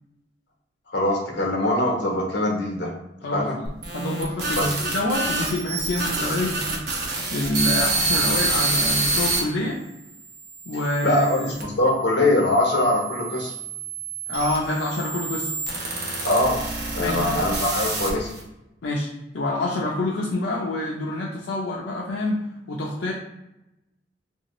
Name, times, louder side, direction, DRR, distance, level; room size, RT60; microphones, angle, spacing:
voice 1, 0.9-2.9 3.3-3.6 4.6-4.7 11.0-13.5 16.2-16.6 16.9-18.3, left 1 dB, 65° left, -1 dB, 0.9 m, -22 dB
voice 2, 3.2-6.8 7.3-9.8 10.7-11.5 14.3-15.5 17.0-17.4 18.8-19.1 19.3-22.4 22.7-23.1, left 1 dB, 85° left, -4 dB, 0.5 m, -27 dB
sound 1, 3.7-9.4 10.1-11.6 12.4-18.4, right 3 dB, 60° right, 0.7 m, -27 dB
3.2 x 2.7 x 2.9 m, 0.88 s
head